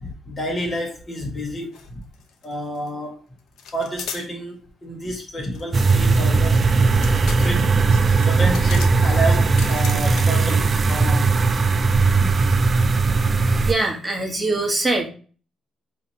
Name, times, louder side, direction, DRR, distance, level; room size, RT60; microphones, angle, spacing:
voice 1, 0.0-2.0 2.4-3.2 3.7-6.6 7.4-7.7 8.2-11.3 12.2-12.3, equal, 35° left, 1.5 m, -29 dB
sound 1, 1.7-1.9 2.1-2.9 3.6-4.3 5.5-10.4, left 6 dB, 80° left, 0.6 m, -37 dB
sound 2, 5.7-13.7, right 4 dB, 40° right, 0.4 m, -18 dB
voice 2, 13.7-15.1, right 2 dB, 20° right, 1.1 m, -22 dB
4.9 x 2.9 x 2.7 m
cardioid pair, 90°, 0 cm